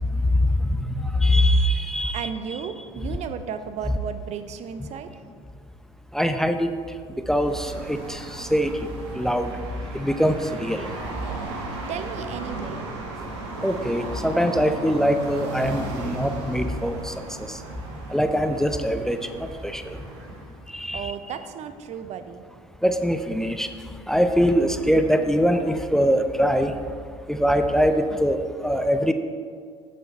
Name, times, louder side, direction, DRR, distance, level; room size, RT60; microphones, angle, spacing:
voice 1, 0.2-2.3 6.1-6.7 7.3-8.8 9.1-9.5 9.9-10.9 13.6-17.1 17.5-17.6 18.1-20.0 20.7-21.1 22.8-23.7 24.1-26.7 27.3-29.1, equal, 5° left, 8 dB, 0.6 m, -23 dB
voice 2, 2.1-5.2 11.9-12.9 20.9-22.5, right 7 dB, 50° right, 10 dB, 0.6 m, -34 dB
sound 1, 7.3-20.6, right 2 dB, 80° right, 1.5 m, -36 dB
8.4 x 7.7 x 4.4 m, 2.1 s
hypercardioid pair, 65°, 15 cm